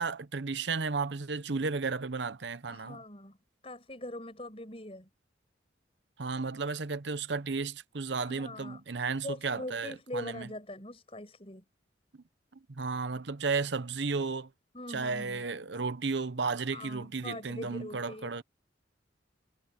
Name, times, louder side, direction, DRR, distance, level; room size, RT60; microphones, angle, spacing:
voice 1, 0.0-3.0 6.2-10.5 12.7-14.5 14.9-18.4, right 4 dB, 75° right, 0.9 m, -33 dB
voice 2, 2.7-3.4 3.6-5.1 8.2-8.8 9.2-11.6 14.7-15.4 16.7-18.3, left 1 dB, 30° left, 6.4 m, -42 dB
head